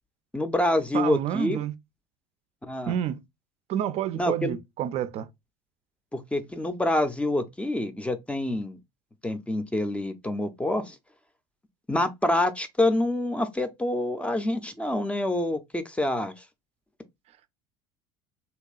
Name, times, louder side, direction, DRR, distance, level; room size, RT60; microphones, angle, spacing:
voice 1, 0.3-1.6 2.7-2.9 4.2-4.6 6.1-8.8 9.2-11.0 11.9-16.3, left 1 dB, 5° left, 0.6 m, -27 dB
voice 2, 0.9-1.7 2.9-3.2 3.7-5.3, right 10 dB, 40° right, 0.5 m, -29 dB
3.3 x 2.9 x 2.4 m
figure-of-eight pair, 70°, 16 cm